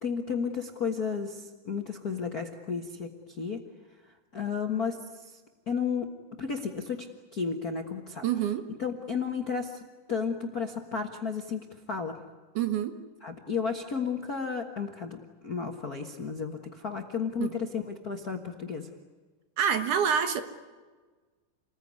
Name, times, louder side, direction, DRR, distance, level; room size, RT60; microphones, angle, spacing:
voice 1, 0.0-3.6 4.3-5.4 5.7-6.1 6.4-7.1 7.3-8.2 8.8-9.8 10.1-12.2 13.2-18.9, left 5 dB, 45° left, 3 dB, 1.2 m, -33 dB
voice 2, 8.2-8.6 12.6-13.0 17.4-17.5 19.6-20.4, right 8 dB, 70° right, 8 dB, 2.9 m, -26 dB
29.0 x 20.5 x 9.6 m, 1.4 s
omnidirectional pair, 3.9 m